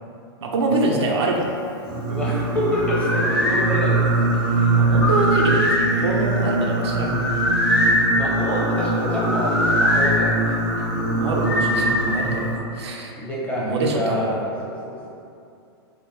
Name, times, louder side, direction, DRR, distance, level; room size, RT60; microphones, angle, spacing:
voice 1, 0.4-1.5 4.8-7.2 11.1-13.1 13.6-14.3, right 2 dB, 85° right, 0 dB, 0.5 m, -24 dB
Singing, 1.8-12.5, right 2 dB, 30° right, 0.4 m, -23 dB
voice 2, 2.1-4.8 8.1-10.6 11.1-11.2 13.2-15.1, equal, 10° left, -7 dB, 0.7 m, -27 dB
sound 1, 2.7-3.6 4.9-5.9 7.2-8.0 9.2-10.1 11.4-12.3, left 1 dB, 60° left, 1.1 m, -22 dB
3.6 x 2.1 x 2.7 m, 2.5 s
hypercardioid pair, 125°, 14 cm